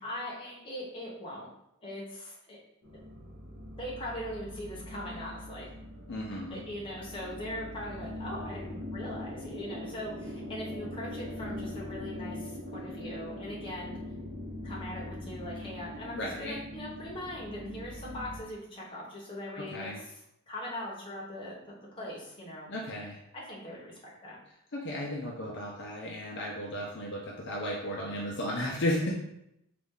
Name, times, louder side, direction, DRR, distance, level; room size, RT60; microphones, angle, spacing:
voice 1, 0.0-1.5 1.8-2.6 2.9-3.0 3.8-5.7 6.5-14.0 14.6-22.7 23.3-24.4, left 1 dB, 25° left, -4 dB, 0.9 m, -41 dB
sound 1, 2.8-18.4, left 1 dB, 50° right, 1.0 m, -42 dB
voice 2, 6.1-6.6 16.1-16.6 19.6-20.0 22.7-23.2 24.7-29.1, left 1 dB, 50° left, -3 dB, 0.5 m, -34 dB
4.1 x 2.5 x 3.6 m, 0.80 s
head